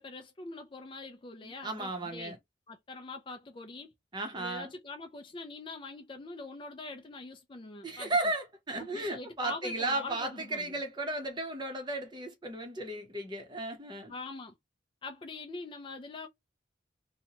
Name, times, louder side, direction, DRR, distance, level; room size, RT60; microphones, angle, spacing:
voice 1, 0.0-2.4 2.7-3.9 4.3-8.1 8.8-10.7 14.1-14.5 15.0-16.3, left 3 dB, 25° left, 0.4 m, -43 dB
voice 2, 1.4-2.4 4.1-4.7 7.8-14.1, right 2 dB, 25° right, 0.7 m, -35 dB
2.8 x 2.2 x 2.8 m
head